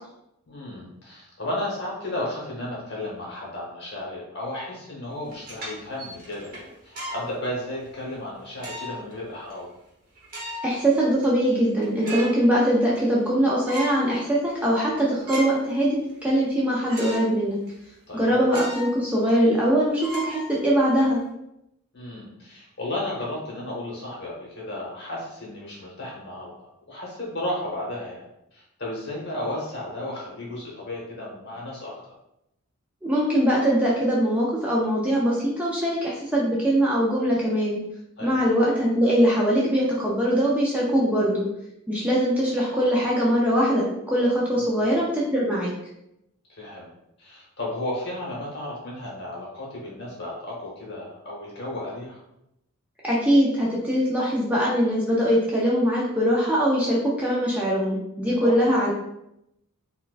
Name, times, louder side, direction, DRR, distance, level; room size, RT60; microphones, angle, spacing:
voice 1, 0.5-9.7 18.1-18.4 21.9-28.2 28.5-32.1 38.2-38.4 44.6-44.8 46.6-46.9 47.2-52.2 58.4-58.6, left 1 dB, 50° left, -4 dB, 1.1 m, -34 dB
sound 1, 5.2-7.3 7.8-7.9 8.6-9.1 9.5-9.6 10.2-10.8 11.2-11.3 11.7-12.4 12.8-13.3 13.7-14.0 14.5-14.6 15.0-15.7 16.1-16.2 16.9-17.3 17.7-17.8 18.5-19.0 19.3-19.4 20.0-21.0, equal, 40° right, 0.9 m, -35 dB
voice 2, 10.6-17.6 18.1-21.2 33.0-37.8 38.2-41.4 41.9-45.7 53.0-58.9, equal, 5° right, -6 dB, 0.4 m, -22 dB
4.2 x 2.2 x 2.5 m, 0.84 s
head